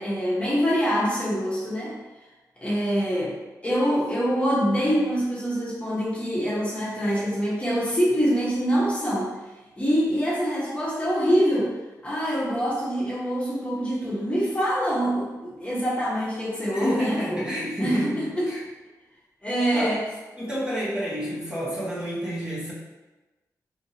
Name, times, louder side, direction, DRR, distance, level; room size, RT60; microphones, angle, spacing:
voice 1, 0.0-1.9 2.6-3.3 3.6-9.3 9.8-11.7 12.0-17.4 17.8-18.5 19.4-20.0, equal, 20° left, -8 dB, 1.1 m, -25 dB
voice 2, 16.7-18.6 19.7-19.9 20.4-22.7, equal, 15° right, -8 dB, 1.1 m, -29 dB
3.5 x 2.8 x 2.8 m, 1.1 s
cardioid pair, 80°, 7 cm